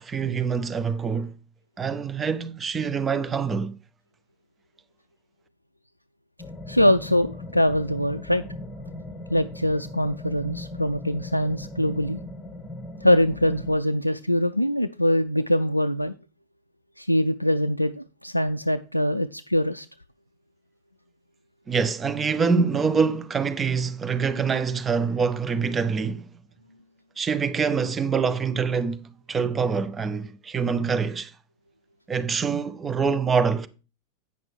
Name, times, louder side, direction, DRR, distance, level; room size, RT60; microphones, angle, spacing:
voice 1, 0.0-1.4 1.8-3.8 21.7-26.3 27.2-31.3 32.1-33.7, right 5 dB, 20° right, 0.6 m, -25 dB
sound 1, 6.4-13.8, left 1 dB, 10° left, 1.5 m, -38 dB
voice 2, 6.7-8.4 9.3-12.2 13.0-16.1 17.0-19.9, equal, 90° left, 0.3 m, -23 dB
8.5 x 6.0 x 4.5 m
figure-of-eight pair, 90°, 0 cm